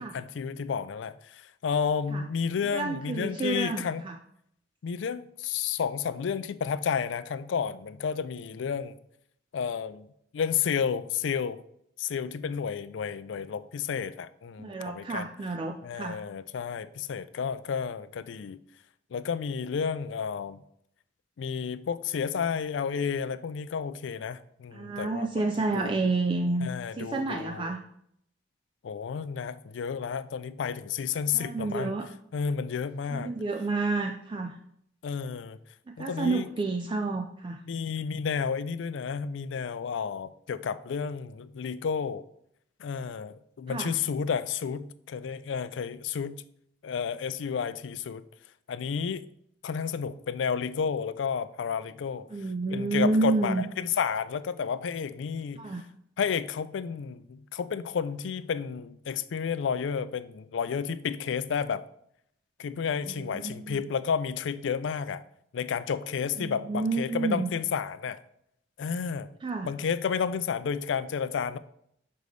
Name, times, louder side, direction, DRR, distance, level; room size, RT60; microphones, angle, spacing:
voice 1, 0.0-4.0 4.8-8.9 9.5-10.1 10.3-11.6 12.0-15.3 15.8-18.6 19.1-20.6 21.4-25.5 25.7-26.0 26.6-27.7 28.8-31.9 32.3-33.3 35.0-35.6 36.0-36.5 37.7-42.2 42.8-46.4 46.8-48.2 48.7-49.3 49.6-52.3 52.7-55.7 56.2-61.8 62.6-65.2 65.5-68.2 68.8-69.3 69.6-71.6, left 6 dB, 80° left, 0.4 m, -31 dB
voice 2, 2.7-4.2 14.6-16.2 24.7-27.8 31.3-32.1 33.1-34.6 35.9-37.6 43.7-43.9 52.3-53.6 55.5-55.8 63.1-63.8 66.4-67.5 69.4-69.7, right 3 dB, 25° right, 0.3 m, -30 dB
6.7 x 5.2 x 3.2 m
head